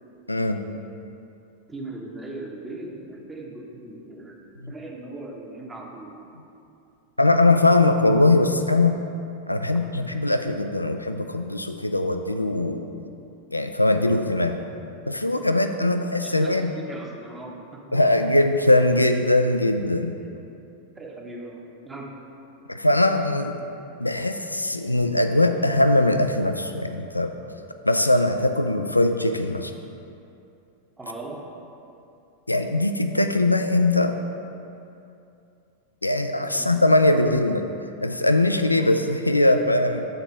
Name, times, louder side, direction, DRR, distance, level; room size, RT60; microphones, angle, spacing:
voice 1, 0.3-0.6 4.6-4.7 7.2-9.0 9.5-13.0 13.5-14.6 15.1-16.7 17.9-20.1 22.7-23.6 24.0-27.3 27.8-29.7 32.5-34.2 36.0-37.6 38.0-40.0, left 2 dB, 85° left, 7 dB, 0.3 m, -21 dB
voice 2, 1.7-4.4 4.7-6.2 15.8-15.9 16.2-18.0 21.0-22.2 31.0-31.6 36.5-36.7, right 2 dB, 15° right, 0 dB, 0.9 m, -38 dB
6.7 x 3.9 x 5.6 m, 2.7 s
figure-of-eight pair, 90°, 0 cm